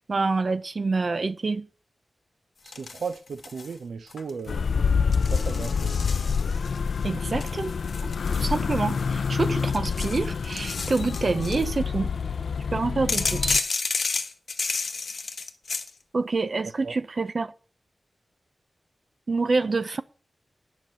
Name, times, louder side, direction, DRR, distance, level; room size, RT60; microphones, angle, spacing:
voice 1, 0.0-1.7 7.0-7.7 8.0-8.1 8.4-12.1 12.7-13.7 16.1-17.5 19.3-20.0, right 3 dB, 45° right, 0.7 m, -27 dB
voice 2, 2.6-4.6 4.9-5.0 5.3-6.0 16.8-17.0, right 5 dB, 85° right, 0.7 m, -36 dB
sound 1, 2.7-3.7 4.1-4.5 5.1-6.8 7.4-9.1 9.6-11.7 13.1-15.9, left 4 dB, 60° left, 1.2 m, -31 dB
sound 2, 4.5-13.6, left 5 dB, 80° left, 0.4 m, -27 dB
9.2 x 6.1 x 8.5 m
wide cardioid pair, 115°, 0 cm